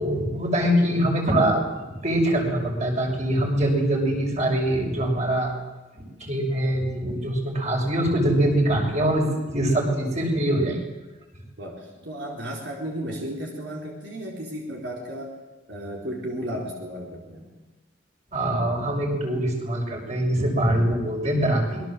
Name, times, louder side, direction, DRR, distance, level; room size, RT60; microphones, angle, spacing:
voice 1, 0.0-1.6 1.9-5.5 5.9-10.8 18.3-21.8, right 1 dB, 40° right, 1 dB, 6.6 m, -23 dB
voice 2, 11.6-15.3 15.7-17.5, equal, 75° right, -1 dB, 4.4 m, -34 dB
26.5 x 22.5 x 7.7 m, 1.1 s
head